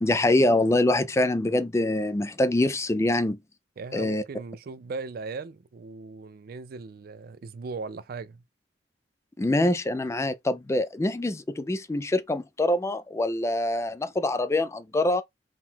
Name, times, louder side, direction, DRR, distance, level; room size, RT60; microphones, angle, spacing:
voice 1, 0.0-3.4 3.9-4.2 9.4-15.2, left 1 dB, 15° left, 0.3 m, -24 dB
voice 2, 3.8-8.4, right 4 dB, 55° right, 0.4 m, -38 dB
3.7 x 2.3 x 4.2 m
head